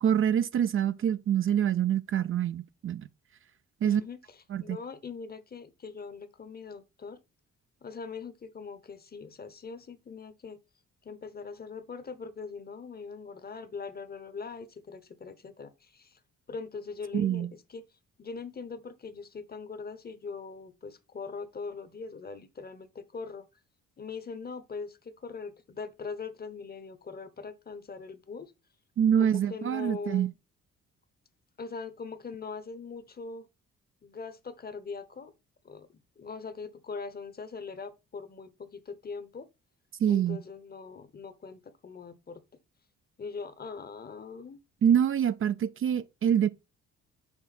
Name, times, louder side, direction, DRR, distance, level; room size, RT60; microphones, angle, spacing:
voice 1, 0.0-3.1 3.8-4.0 4.5-4.8 17.1-17.5 29.0-30.3 40.0-40.4 44.8-46.5, right 9 dB, 45° right, 0.5 m, -25 dB
voice 2, 3.8-7.2 7.8-10.6 11.0-16.2 16.5-17.8 18.2-23.4 24.0-28.5 29.2-30.3 31.6-33.5 34.0-35.3 35.6-35.9 36.2-39.5 40.1-42.4 43.2-44.6, left 5 dB, 30° left, 0.9 m, -41 dB
7.2 x 4.7 x 4.2 m
cardioid pair, 90°, 30 cm